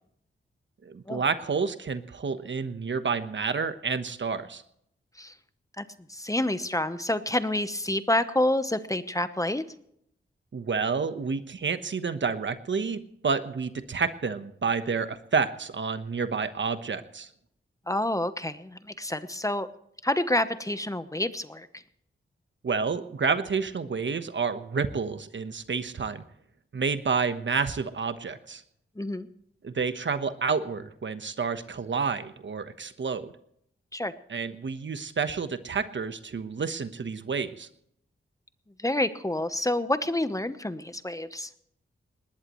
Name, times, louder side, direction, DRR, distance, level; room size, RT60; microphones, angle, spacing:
voice 1, 0.8-4.6 10.5-17.3 22.6-26.2 26.7-28.6 29.6-33.3 34.3-37.7, right 5 dB, 60° right, 10 dB, 1.1 m, -29 dB
voice 2, 5.8-9.6 17.9-19.7 20.0-21.8 29.0-29.3 33.9-34.1 38.8-41.5, left 1 dB, 15° left, 11 dB, 0.9 m, -28 dB
20.0 x 19.5 x 3.1 m, 0.72 s
wide cardioid pair, 75°, 21 cm